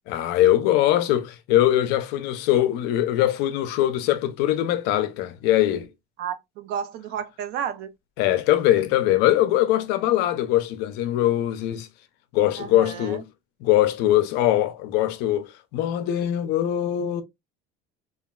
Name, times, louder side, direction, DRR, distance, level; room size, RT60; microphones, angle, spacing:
voice 1, 0.1-5.9 8.2-11.9 12.3-13.3 13.6-17.2, left 13 dB, 75° left, 0.5 m, -22 dB
voice 2, 6.2-7.9 12.6-13.2, right 8 dB, 70° right, 0.5 m, -32 dB
3.0 x 2.4 x 2.2 m
cardioid pair, 110°, 17 cm